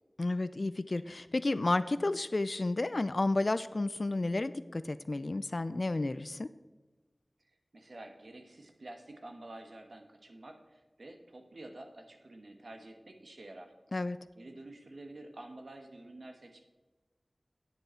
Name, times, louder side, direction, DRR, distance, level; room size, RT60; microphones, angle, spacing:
voice 1, 0.2-6.5 13.9-14.2, left 2 dB, 60° left, 14 dB, 0.3 m, -31 dB
voice 2, 7.7-13.7 14.3-16.6, right 2 dB, 75° right, 5 dB, 1.2 m, -49 dB
9.4 x 7.8 x 4.4 m, 1.2 s
wide cardioid pair, 55°, 0 cm